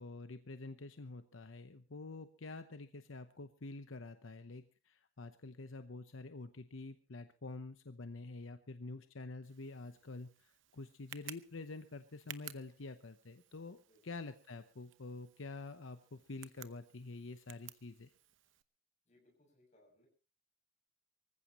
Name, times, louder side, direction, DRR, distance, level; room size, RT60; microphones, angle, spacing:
voice 1, 0.0-18.1, left 3 dB, 80° left, 9 dB, 0.9 m, -48 dB
Tick, 9.4-18.6, right 11 dB, 75° right, 0.9 m, -56 dB
voice 2, 19.1-20.1, left 1 dB, 35° left, 1 dB, 7.1 m, -69 dB
24.5 x 15.0 x 3.0 m, 0.33 s
head